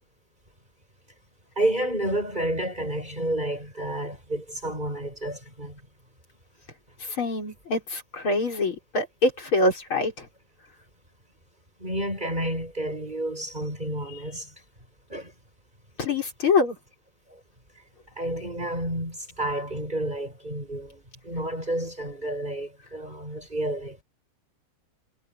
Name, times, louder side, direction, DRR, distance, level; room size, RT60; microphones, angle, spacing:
voice 1, 1.6-5.8 11.8-14.5 15.1-15.3 18.2-24.0, right 1 dB, 20° right, 7.2 m, -30 dB
voice 2, 7.2-10.3 16.0-16.8, left 3 dB, 70° left, 6.0 m, -25 dB
omnidirectional pair, 2.3 m